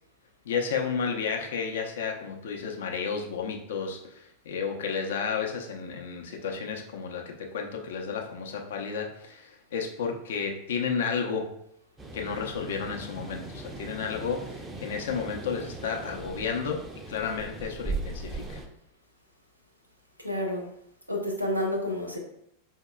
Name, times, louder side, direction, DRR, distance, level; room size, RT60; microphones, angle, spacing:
voice 1, 0.5-11.5 12.1-18.6, left 6 dB, 60° left, 2 dB, 0.6 m, -32 dB
sound 1, 12.0-18.7, right 2 dB, 15° right, 0.5 m, -39 dB
voice 2, 20.2-20.7 21.1-22.2, left 1 dB, 90° right, 0 dB, 0.8 m, -29 dB
4.5 x 2.8 x 2.3 m, 0.75 s
figure-of-eight pair, 90°, 0 cm